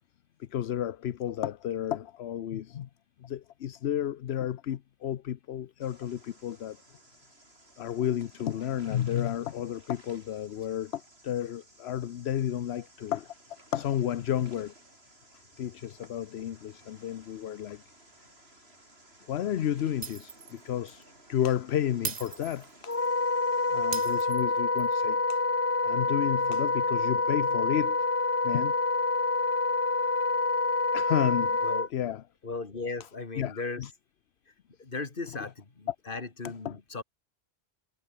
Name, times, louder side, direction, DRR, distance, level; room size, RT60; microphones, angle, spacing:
voice 1, 0.4-2.9 3.2-6.8 7.8-13.3 13.7-14.7 15.6-17.8 19.3-23.0 23.7-25.4 25.8-28.0 28.4-28.7 30.9-31.6 31.9-32.2 33.4-33.9 36.6-36.7, left 10 dB, 75° left, 1.0 m, -32 dB
sound 1, 5.8-24.3, right 1 dB, 75° right, 6.5 m, -57 dB
Shatter, 20.0-20.6 20.9-21.0 22.0-23.1 23.9-24.9, right 6 dB, 45° right, 1.0 m, -38 dB
Wind instrument woodwind instrument, 22.9-31.9, left 3 dB, 20° left, 0.3 m, -27 dB
voice 2, 32.4-33.9 34.5-34.6 34.8-37.0, left 3 dB, 55° left, 2.3 m, -37 dB
omnidirectional pair, 1.1 m